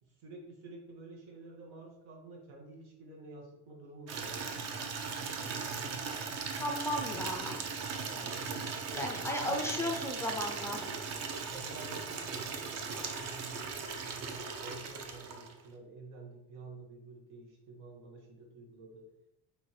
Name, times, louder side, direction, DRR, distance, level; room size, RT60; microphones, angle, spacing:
voice 1, 0.0-4.7 5.4-6.6 8.0-8.5 9.4-9.6 11.5-19.0, right 3 dB, 90° right, 0 dB, 1.3 m, -50 dB
Water tap faucet / Liquid, 4.1-15.7, right 5 dB, 45° right, 0.6 m, -38 dB
voice 2, 6.6-7.6 8.9-10.8, left 1 dB, 10° left, 1 dB, 0.3 m, -35 dB
4.3 x 3.4 x 3.2 m, 0.85 s
cardioid pair, 155°, 37 cm